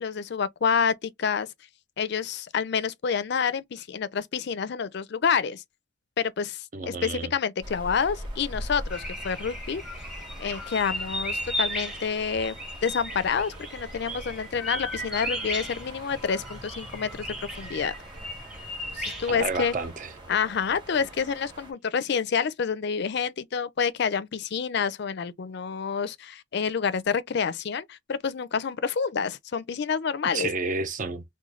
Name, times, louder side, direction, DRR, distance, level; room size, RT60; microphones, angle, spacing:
voice 1, 0.0-1.5 2.0-5.6 6.2-9.8 10.4-12.6 12.8-17.9 18.9-19.7 20.3-30.5, left 6 dB, 55° left, 0.4 m, -28 dB
voice 2, 6.7-7.3 19.3-20.1 30.3-31.2, right 3 dB, 40° right, 0.5 m, -30 dB
sound 1, 7.6-21.7, right 1 dB, 20° right, 1.1 m, -43 dB
sound 2, 8.9-19.9, equal, 5° right, 0.8 m, -36 dB
3.1 x 2.2 x 3.6 m
head